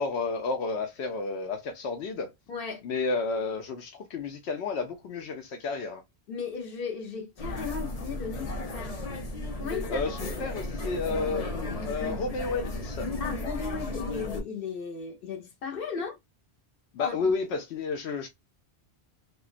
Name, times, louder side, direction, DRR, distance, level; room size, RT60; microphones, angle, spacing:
voice 1, 0.0-2.3 2.8-6.0 9.9-13.1 16.9-18.3, left 4 dB, 85° left, 0.9 m, -31 dB
voice 2, 2.5-2.8 6.3-9.0 9.6-10.0 13.2-16.2 17.0-17.2, left 5 dB, 60° left, 1.1 m, -36 dB
sound 1, 7.4-14.4, left 2 dB, 40° left, 0.7 m, -34 dB
3.5 x 2.3 x 2.4 m
omnidirectional pair, 1.1 m